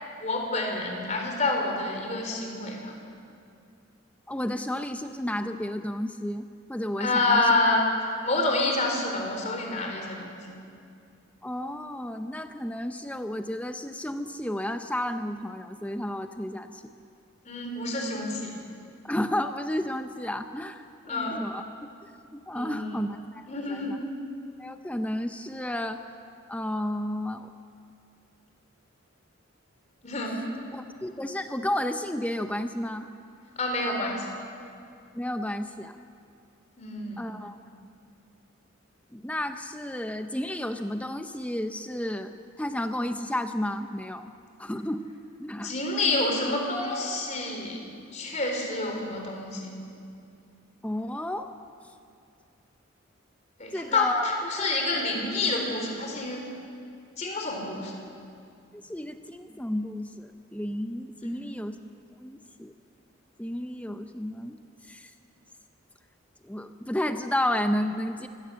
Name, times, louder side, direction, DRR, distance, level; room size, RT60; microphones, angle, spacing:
voice 1, 0.2-2.9 7.0-7.8 8.2-10.3 17.5-18.6 21.1-21.4 22.5-23.1 23.5-24.0 30.0-30.5 33.6-34.2 36.8-37.2 45.6-49.7 53.6-56.4 57.2-57.9 61.2-61.4, left 2 dB, 35° left, 1 dB, 4.0 m, -28 dB
voice 2, 4.3-7.5 11.4-16.8 19.0-21.6 22.0-24.0 24.6-26.0 26.5-27.5 30.7-33.1 35.1-35.9 37.2-37.6 39.1-42.3 42.6-44.3 44.6-45.1 45.4-45.7 50.8-51.5 53.7-54.7 58.7-61.8 62.2-62.7 63.4-64.6 64.8-65.1 66.4-68.3, left 1 dB, 5° left, 8 dB, 0.6 m, -32 dB
24.5 x 16.5 x 7.5 m, 2.4 s
head